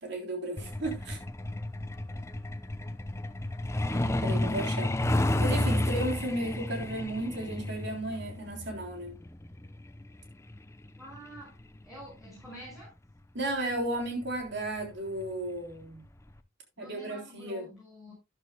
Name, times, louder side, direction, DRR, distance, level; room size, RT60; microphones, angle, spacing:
voice 1, 0.0-1.2 3.9-4.9 5.4-9.2 13.3-16.0 16.8-17.7, right 1 dB, 55° right, 3.5 m, -34 dB
Truck, 0.6-12.9 14.1-14.3 14.7-14.8 15.2-15.5 15.8-15.9 16.4-16.5, left 1 dB, 15° left, 0.7 m, -32 dB
voice 2, 11.0-11.6 11.8-12.9 16.8-18.1, equal, ahead, 5.5 m, -47 dB
12.5 x 11.0 x 2.2 m
head